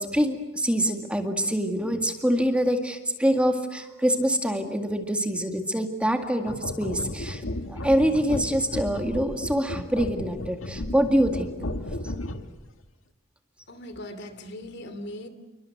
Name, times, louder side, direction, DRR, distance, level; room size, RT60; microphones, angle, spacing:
voice 1, 0.0-7.4 7.7-11.5, equal, 5° right, 5 dB, 2.0 m, -25 dB
sound 1, 6.4-12.6, left 1 dB, 90° left, 1.8 m, -34 dB
voice 2, 13.7-15.3, left 1 dB, 60° left, 10 dB, 2.9 m, -39 dB
29.0 x 23.5 x 7.9 m, 1.0 s
head